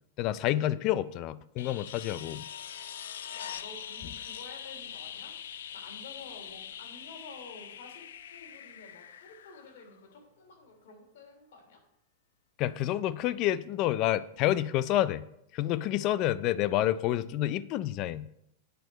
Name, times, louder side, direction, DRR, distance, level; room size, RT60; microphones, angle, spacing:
voice 1, 0.2-2.4 12.6-15.2 15.5-18.3, left 13 dB, 35° left, 16 dB, 0.4 m, -28 dB
sound 1, 1.6-10.3 12.6-12.7, left 9 dB, 85° left, 0.6 m, -43 dB
voice 2, 3.3-11.8, left 3 dB, 70° left, 2 dB, 3.2 m, -51 dB
9.2 x 6.2 x 5.2 m, 0.77 s
supercardioid pair, 155°, 0 cm